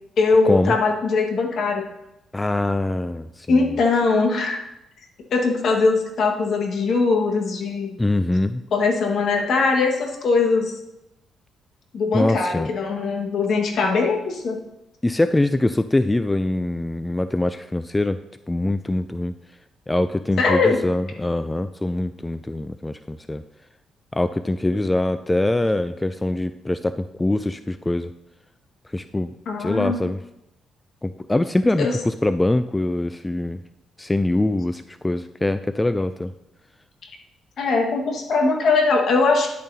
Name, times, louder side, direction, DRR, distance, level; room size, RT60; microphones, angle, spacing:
voice 1, 0.2-1.8 3.5-4.6 5.3-8.0 8.7-10.7 11.9-14.6 20.4-20.8 29.5-30.0 31.8-32.0 37.6-39.5, left 4 dB, 60° left, 2 dB, 1.6 m, -21 dB
voice 2, 2.3-3.7 8.0-8.6 12.1-12.7 15.0-18.2 18.5-19.3 19.9-23.4 24.1-28.1 28.9-29.3 29.6-30.2 31.0-33.6 34.0-36.3, left 1 dB, 15° left, 11 dB, 0.3 m, -23 dB
10.5 x 8.9 x 2.8 m, 0.89 s
cardioid pair, 90°, 0 cm